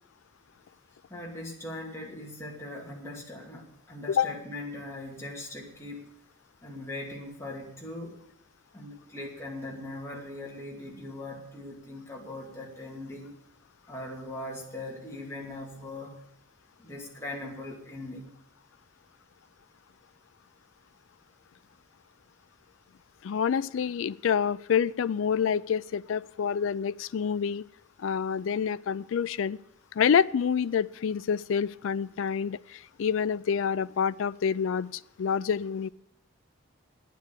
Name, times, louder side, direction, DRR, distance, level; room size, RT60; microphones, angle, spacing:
voice 1, 1.1-6.1 6.6-8.2 8.7-13.3 13.9-16.2 16.8-18.3, left 1 dB, 15° left, -2 dB, 2.4 m, -40 dB
voice 2, 23.2-27.6 28.0-29.6 29.9-35.9, left 7 dB, 70° left, 17 dB, 0.4 m, -27 dB
9.4 x 9.3 x 8.4 m, 0.78 s
head